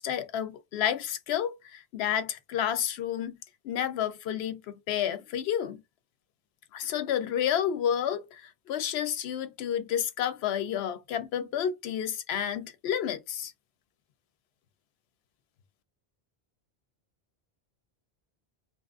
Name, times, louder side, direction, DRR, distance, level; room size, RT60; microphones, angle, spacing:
voice 1, 0.0-3.4 3.6-5.8 6.7-13.5, left 9 dB, 80° left, 0.8 m, -30 dB
2.9 x 2.3 x 2.4 m
omnidirectional pair, 1.1 m